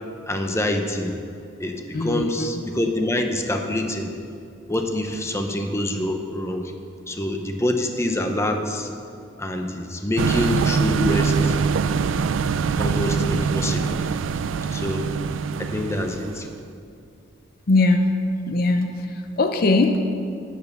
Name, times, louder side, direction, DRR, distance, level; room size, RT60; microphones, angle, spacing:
voice 1, 0.3-1.2 1.6-4.1 4.7-6.7 7.1-8.9 9.4-11.6 12.8-14.0 14.7-15.1 15.6-16.5, left 1 dB, 15° left, 4 dB, 0.7 m, -26 dB
voice 2, 1.9-2.5 17.7-18.1 18.5-18.9 19.4-20.0, left 2 dB, 50° left, 6 dB, 0.6 m, -20 dB
sound 1, 10.2-16.6, right 5 dB, 85° right, 0.4 m, -23 dB
9.2 x 8.3 x 6.8 m, 2.5 s
head